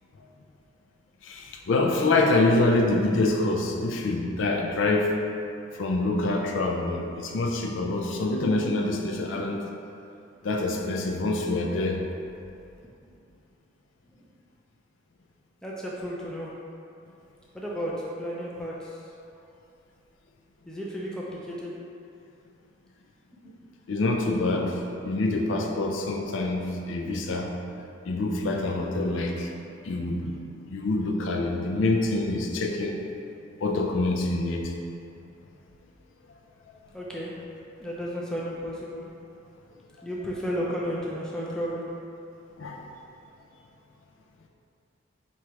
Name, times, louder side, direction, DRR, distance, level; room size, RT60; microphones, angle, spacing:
voice 1, 1.2-5.1 5.7-9.6 10.4-12.0 23.4-23.5 23.9-27.5 28.1-29.5 29.8-30.4 30.7-33.0 33.6-34.7 42.6-42.8, left 2 dB, 70° left, 1 dB, 0.4 m, -26 dB
voice 2, 15.6-16.5 17.5-19.0 20.7-21.7 36.9-37.4 37.8-39.0 40.0-41.9, equal, 5° left, -5 dB, 0.4 m, -33 dB
3.1 x 2.9 x 4.6 m, 2.6 s
head